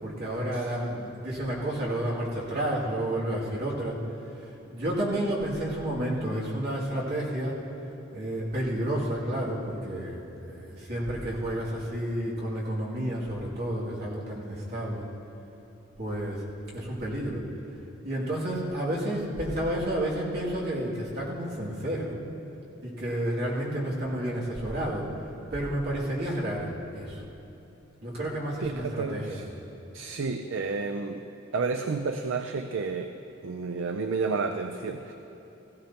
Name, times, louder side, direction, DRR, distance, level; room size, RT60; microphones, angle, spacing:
voice 1, 0.0-4.0 4.7-7.6 8.1-15.1 16.0-16.4 16.7-17.4 18.0-22.2 22.8-25.1 25.5-27.2 28.0-29.4, right 1 dB, 55° right, -5 dB, 2.5 m, -30 dB
voice 2, 28.6-29.5 29.9-31.2 31.5-33.1 33.4-35.1, right 4 dB, 80° right, 6 dB, 0.5 m, -31 dB
16.5 x 15.5 x 2.9 m, 2.9 s
head